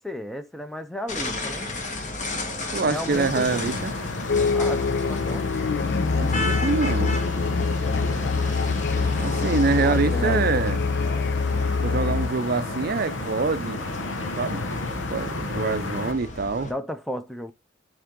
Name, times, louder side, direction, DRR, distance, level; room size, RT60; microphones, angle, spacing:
voice 1, 0.0-1.7 2.9-3.6 4.5-5.5 9.7-10.5 16.6-17.5, equal, ahead, 0.6 m, -33 dB
sound 1, 1.1-16.7, left 2 dB, 40° left, 1.6 m, -34 dB
voice 2, 2.7-3.9 6.1-7.2 9.2-10.8 11.8-13.8 14.4-14.6 15.1-16.7, right 4 dB, 55° right, 0.5 m, -25 dB
sound 2, 3.1-16.1, left 2 dB, 85° left, 1.0 m, -31 dB
sound 3, 4.3-12.3, left 4 dB, 60° left, 0.4 m, -25 dB
9.4 x 3.5 x 3.7 m
head